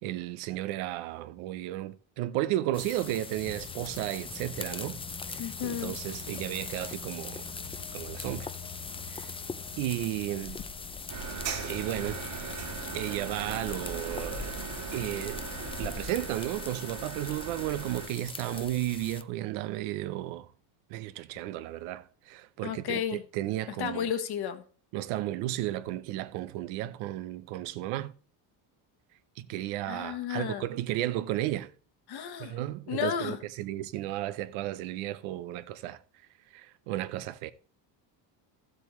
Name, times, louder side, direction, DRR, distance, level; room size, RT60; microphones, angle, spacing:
voice 1, 0.0-5.0 5.3-7.5 7.9-8.5 9.1-9.3 9.8-10.6 11.5-12.2 12.9-14.5 14.9-15.4 15.8-20.5 20.9-24.1 24.9-28.1 29.4-31.7 32.4-36.0 36.5-37.5, right 14 dB, 90° right, 0.8 m, -33 dB
sound 1, 2.7-19.2, left 4 dB, 15° left, 0.4 m, -41 dB
sound 2, 3.4-16.3, left 6 dB, 75° left, 2.3 m, -47 dB
voice 2, 5.4-5.9 22.6-23.2 23.8-24.6 29.9-30.7 32.1-32.6 32.9-33.4, left 9 dB, 55° left, 1.3 m, -33 dB
sound 3, 11.1-18.1, right 6 dB, 60° right, 3.0 m, -39 dB
13.0 x 7.8 x 3.1 m
cardioid pair, 115°, 47 cm